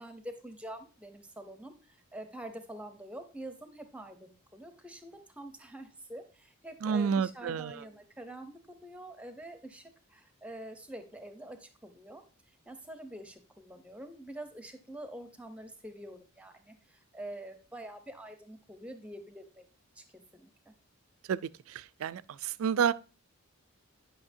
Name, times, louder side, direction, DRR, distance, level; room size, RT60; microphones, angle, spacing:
voice 1, 0.0-12.2 12.7-19.6 19.9-20.0 20.3-20.7, right 1 dB, 5° right, 0.7 m, -46 dB
voice 2, 6.8-7.8 21.3-21.4 22.0-22.9, right 7 dB, 70° right, 0.3 m, -29 dB
9.7 x 5.7 x 2.6 m
head